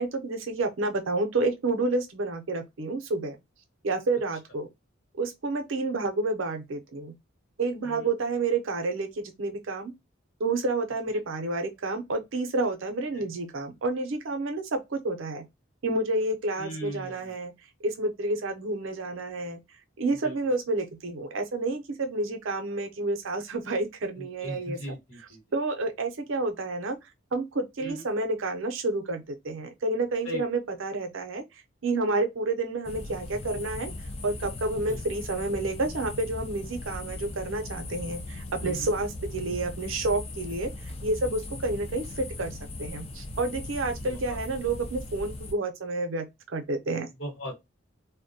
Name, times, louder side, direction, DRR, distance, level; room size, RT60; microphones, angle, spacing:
voice 1, 0.0-3.4 3.8-4.7 5.2-7.1 7.6-9.9 10.4-15.4 15.8-17.5 17.8-19.6 20.0-24.8 25.5-27.0 27.3-31.4 31.8-33.9 34.2-47.1, right 2 dB, 85° right, 0.6 m, -29 dB
voice 2, 16.5-17.3 20.2-20.4 24.1-25.4 27.8-28.0 30.2-30.4 34.9-35.0 38.6-38.9 44.1-44.4 47.2-47.5, right 1 dB, 85° left, 1.2 m, -38 dB
sound 1, 32.8-45.5, left 2 dB, 30° left, 0.4 m, -38 dB
2.2 x 2.1 x 2.6 m
head